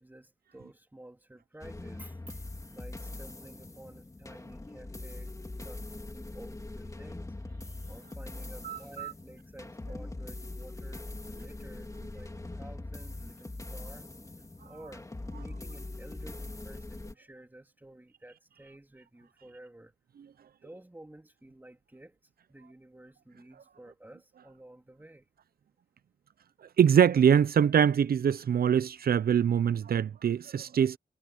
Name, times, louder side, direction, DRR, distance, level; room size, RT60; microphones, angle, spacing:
voice 1, 0.0-5.3 5.6-7.3 7.9-14.1 14.6-19.9 20.6-22.2 22.5-25.3, right 1 dB, 10° right, 3.4 m, -52 dB
sound 1, 1.6-17.1, left 2 dB, 20° left, 3.9 m, -42 dB
voice 2, 8.6-9.1 26.8-31.0, right 8 dB, 75° right, 0.5 m, -24 dB
wide cardioid pair, 135°, 16 cm